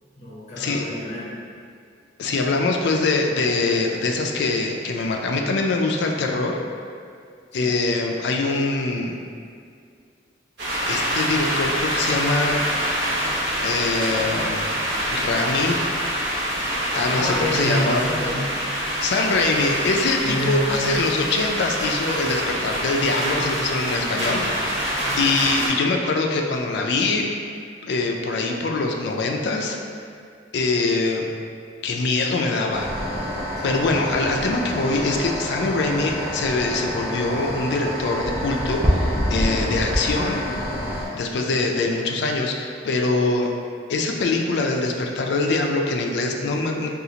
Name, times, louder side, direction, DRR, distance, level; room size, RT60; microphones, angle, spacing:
voice 1, 0.2-1.3 7.6-7.7 17.1-18.5 20.2-21.1 22.4-22.5 22.8-22.9 25.0-25.2 33.6-33.8, equal, 35° left, -8 dB, 0.8 m, -28 dB
voice 2, 2.2-6.6 7.5-9.2 10.9-12.6 13.6-14.7 15.1-15.8 16.9-18.0 19.0-27.3 27.8-29.8 30.5-31.3 31.8-32.9 33.6-40.4 41.1-43.5 43.9-46.9, left 3 dB, 65° left, 2 dB, 0.3 m, -23 dB
sound 1, 10.6-25.7, equal, 70° right, 0.8 m, -26 dB
sound 2, 32.7-41.1, equal, 10° right, 0.5 m, -27 dB
3.8 x 2.4 x 2.8 m, 2.2 s
head